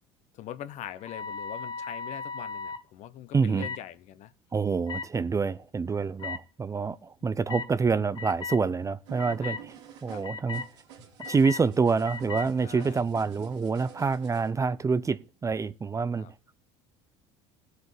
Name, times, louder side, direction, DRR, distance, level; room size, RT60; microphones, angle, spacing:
voice 1, 0.3-4.3 7.2-7.3 9.4-9.6 10.1-10.2 12.6-13.0 16.2-16.3, left 11 dB, 55° left, 1.0 m, -42 dB
sound 1, 1.0-2.8 3.6-3.8 4.9-5.1 6.2-6.4 7.5-7.7 8.2-8.6 9.2-9.6 10.2-10.7 11.2-11.6 12.0-12.5, left 5 dB, 30° left, 1.4 m, -36 dB
voice 2, 3.3-3.7 4.5-9.7 10.0-10.6 11.3-16.3, right 5 dB, 20° right, 0.6 m, -27 dB
sound 2, 9.0-14.5, right 7 dB, 80° right, 3.3 m, -49 dB
19.0 x 8.0 x 3.3 m
hypercardioid pair, 75°, 15 cm